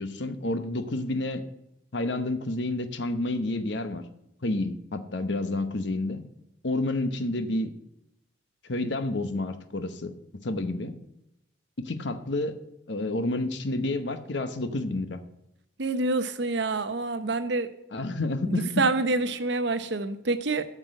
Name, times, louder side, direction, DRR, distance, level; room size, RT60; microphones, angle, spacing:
voice 1, 0.0-1.4 1.9-4.1 4.4-6.2 6.6-7.7 8.7-10.1 10.4-11.0 11.8-12.6 12.9-15.2 17.9-18.9, left 2 dB, 65° left, 0.9 m, -29 dB
voice 2, 15.8-17.7 18.5-20.7, right 3 dB, 65° right, 0.8 m, -27 dB
9.0 x 6.2 x 7.6 m
head